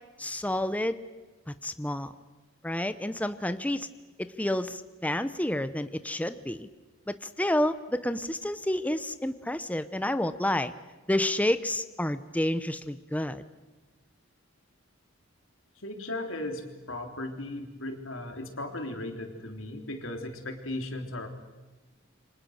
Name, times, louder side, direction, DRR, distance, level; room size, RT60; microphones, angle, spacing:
voice 1, 0.2-1.0 1.6-2.1 2.6-3.9 4.2-6.7 7.1-10.7 11.1-13.4, left 1 dB, 10° left, 11 dB, 0.7 m, -29 dB
voice 2, 15.8-21.3, left 1 dB, 90° left, 4 dB, 3.5 m, -36 dB
28.5 x 25.0 x 6.5 m, 1.2 s
head